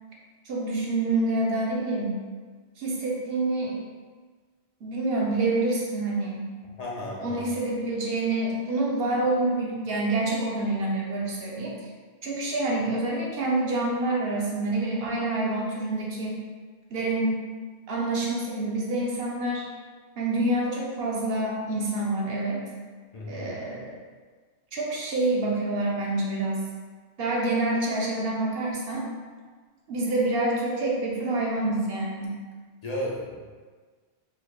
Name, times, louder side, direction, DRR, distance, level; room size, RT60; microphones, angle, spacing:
voice 1, 0.5-2.2 2.8-3.8 4.8-6.5 7.2-11.7 12.2-16.4 16.9-17.3 17.9-19.7 20.2-22.6 23.3-23.9 24.7-26.6 27.2-29.1 29.9-32.4, right 2 dB, 60° right, -3 dB, 0.9 m, -27 dB
voice 2, 6.8-7.4 23.1-23.5 32.8-33.5, left 1 dB, 45° left, -3 dB, 0.6 m, -34 dB
4.0 x 3.0 x 2.4 m, 1.5 s
omnidirectional pair, 1.1 m